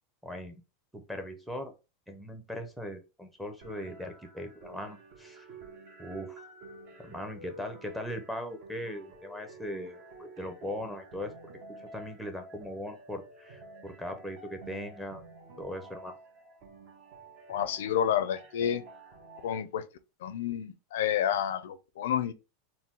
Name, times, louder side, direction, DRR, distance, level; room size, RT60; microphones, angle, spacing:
voice 1, 0.2-0.6 0.9-1.7 2.1-5.5 6.0-6.4 7.0-11.4 11.8-15.3 15.6-16.2, equal, ahead, 0.7 m, -39 dB
sound 1, 3.6-19.6, right 2 dB, 50° right, 1.1 m, -50 dB
voice 2, 17.5-18.8 19.4-19.8 20.2-22.3, left 9 dB, 85° left, 0.5 m, -29 dB
4.1 x 2.2 x 3.6 m
supercardioid pair, 155°, 0 cm